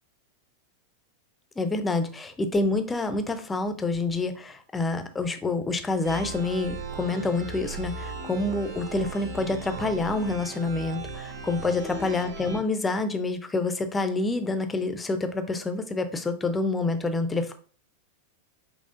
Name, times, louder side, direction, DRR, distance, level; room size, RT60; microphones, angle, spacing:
voice 1, 1.6-17.5, left 3 dB, 15° left, 9 dB, 0.5 m, -27 dB
sound 1, 6.0-12.6, right 3 dB, 45° right, 2.3 m, -37 dB
5.4 x 3.0 x 2.6 m, 0.41 s
figure-of-eight pair, 90°, 0 cm